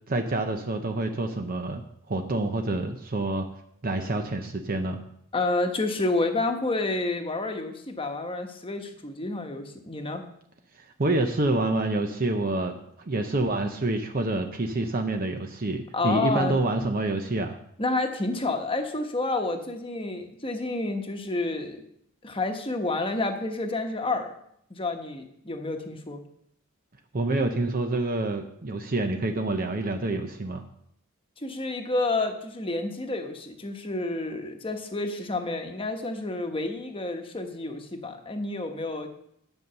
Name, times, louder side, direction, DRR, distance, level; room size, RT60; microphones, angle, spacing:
voice 1, 0.1-3.5 3.8-5.0 10.7-17.6 27.1-30.6, right 2 dB, 40° right, 5 dB, 0.7 m, -27 dB
voice 2, 5.3-10.2 15.9-16.6 17.8-21.8 22.2-24.3 24.7-26.2 31.4-39.1, left 2 dB, 25° left, 5 dB, 1.1 m, -29 dB
10.5 x 5.4 x 6.8 m, 0.73 s
head